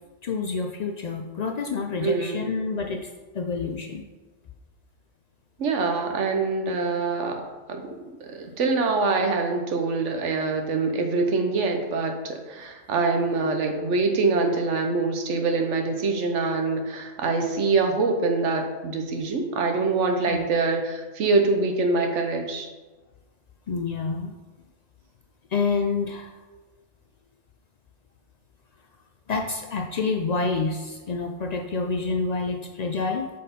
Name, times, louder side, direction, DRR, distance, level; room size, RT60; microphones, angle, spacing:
voice 1, 0.2-3.1 3.3-4.0 20.3-20.5 23.7-24.3 25.5-26.3 29.3-33.3, left 4 dB, 85° left, 3 dB, 0.3 m, -28 dB
voice 2, 2.0-2.5 5.6-7.8 8.2-22.7, right 3 dB, 70° right, 4 dB, 1.2 m, -24 dB
6.7 x 4.2 x 5.1 m, 1.2 s
omnidirectional pair, 1.3 m